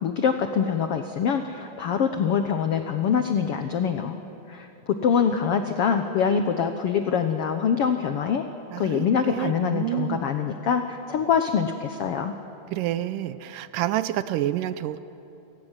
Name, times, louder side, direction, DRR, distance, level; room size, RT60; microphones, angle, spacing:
voice 1, 0.0-4.2 4.5-8.4 8.8-12.3, left 7 dB, 80° left, 7 dB, 1.3 m, -24 dB
voice 2, 8.7-10.2 12.7-15.0, right 13 dB, 80° right, 14 dB, 2.2 m, -28 dB
29.5 x 19.0 x 7.4 m, 3.0 s
omnidirectional pair, 3.9 m